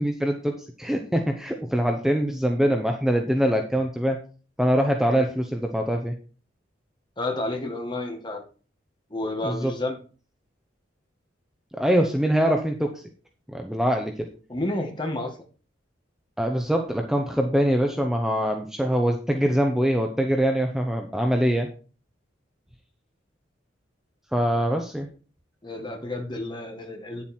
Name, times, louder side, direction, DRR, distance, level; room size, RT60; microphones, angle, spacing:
voice 1, 0.0-4.2 4.6-6.1 9.4-9.7 11.7-13.0 13.5-14.3 16.4-21.7 24.3-25.1, equal, ahead, 3 dB, 0.8 m, -23 dB
voice 2, 7.2-8.4 9.1-10.0 14.5-15.4 25.6-27.2, left 2 dB, 25° left, 3 dB, 1.8 m, -30 dB
9.7 x 7.3 x 4.5 m, 0.37 s
head